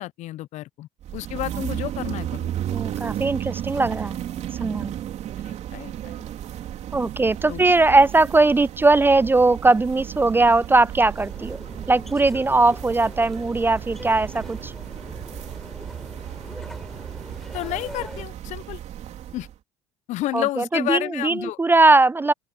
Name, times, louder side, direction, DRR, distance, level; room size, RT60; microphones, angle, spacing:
voice 1, 0.0-2.5 5.4-6.2 7.5-7.6 17.5-18.8 19.3-19.5 20.1-21.6, left 16 dB, 60° left, 0.9 m, -31 dB
sound 1, 1.0-19.6, right 11 dB, 55° right, 3.4 m, -34 dB
voice 2, 2.7-4.2 4.6-4.9 6.9-11.6 11.9-14.7 20.3-22.3, right 3 dB, 15° right, 0.4 m, -19 dB
sound 2, 11.1-18.2, equal, ahead, 4.6 m, -41 dB
hypercardioid pair, 60°, 14 cm